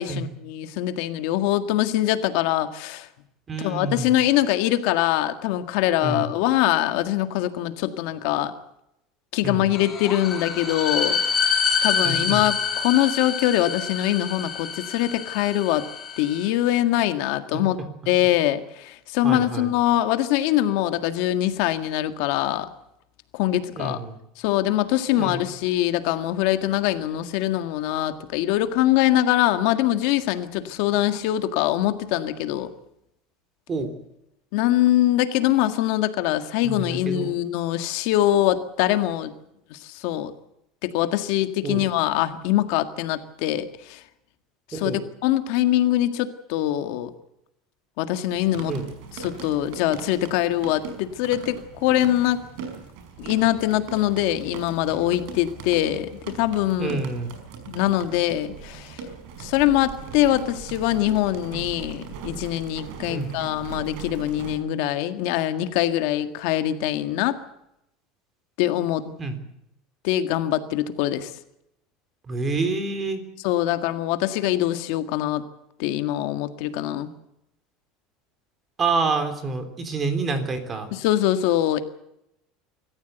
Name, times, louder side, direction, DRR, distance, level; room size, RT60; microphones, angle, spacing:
voice 1, 0.0-3.1 3.6-8.5 9.3-11.2 11.5-15.9 16.2-17.8 18.1-22.7 23.3-24.0 24.4-32.7 34.5-39.3 39.7-40.3 40.8-44.0 44.7-44.9 45.2-47.1 48.0-48.7 49.1-52.4 53.2-57.0 57.7-59.0 59.4-67.4 68.6-69.1 70.0-71.3 73.4-75.4 75.8-77.1 80.9-81.8, left 13 dB, 65° left, 9 dB, 1.8 m, -23 dB
voice 2, 3.5-4.1 6.0-6.3 9.4-9.7 12.0-12.5 19.2-19.7 23.7-24.2 25.1-25.4 33.7-33.9 36.6-37.4 41.6-41.9 44.7-45.0 48.7-48.9 56.8-57.3 63.1-63.4 69.2-69.4 72.3-73.2 78.8-80.9, right 3 dB, 20° right, 9 dB, 3.3 m, -28 dB
sound 1, 9.7-16.5, left 6 dB, 20° left, 3.4 m, -27 dB
sound 2, 48.3-64.6, right 6 dB, 65° right, 5.3 m, -40 dB
25.5 x 14.5 x 8.1 m, 0.82 s
cardioid pair, 155°, 0 cm